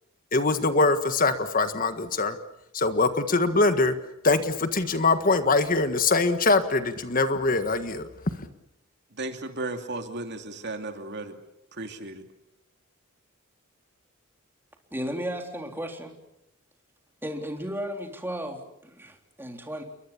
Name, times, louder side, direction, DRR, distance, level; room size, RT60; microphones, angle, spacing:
voice 1, 0.3-2.4 2.7-3.9 4.2-8.1, left 3 dB, 40° left, 9 dB, 1.6 m, -23 dB
voice 2, 9.2-11.4 11.7-12.2, right 2 dB, 55° right, 5 dB, 2.8 m, -35 dB
voice 3, 14.9-16.1 17.2-19.8, equal, 10° right, 3 dB, 3.5 m, -34 dB
29.5 x 23.0 x 7.2 m, 0.84 s
head